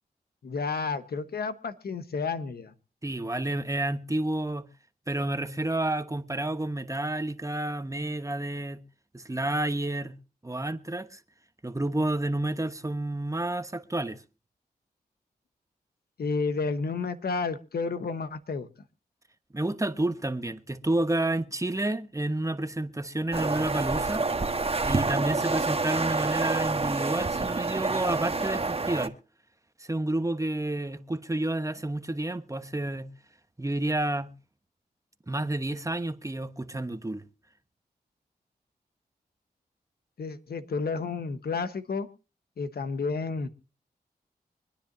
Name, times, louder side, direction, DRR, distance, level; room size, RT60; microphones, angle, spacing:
voice 1, 0.4-2.7 16.2-18.7 40.2-42.1 42.6-43.5, left 4 dB, 70° left, 1.3 m, -31 dB
voice 2, 3.0-4.7 5.1-8.8 9.1-10.1 10.4-11.2 11.6-14.2 19.5-24.2 24.8-29.1 29.8-33.1 33.6-34.3 35.3-37.2, right 1 dB, 20° right, 1.2 m, -30 dB
sound 1, 23.3-29.1, right 3 dB, 35° right, 1.3 m, -28 dB
25.0 x 10.0 x 2.7 m
cardioid pair, 45°, 17 cm